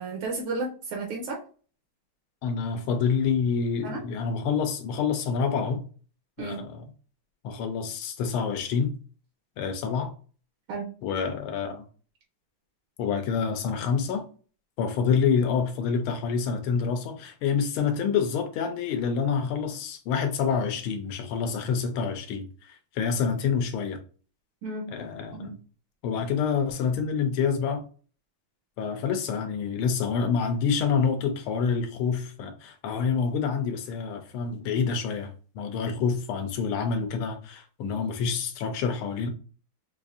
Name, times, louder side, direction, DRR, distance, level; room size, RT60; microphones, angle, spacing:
voice 1, 0.0-1.4 3.8-4.1 6.4-6.6 10.7-10.9 24.6-24.9 25.3-25.5, right 3 dB, 80° right, 1.7 m, -33 dB
voice 2, 2.4-5.8 6.4-6.8 7.4-8.9 9.6-10.1 11.0-11.8 13.0-14.3 14.8-22.5 22.9-24.0 24.9-25.5 26.0-27.8 28.8-39.3, left 6 dB, 80° left, 1.5 m, -27 dB
5.3 x 2.5 x 2.5 m
omnidirectional pair, 2.4 m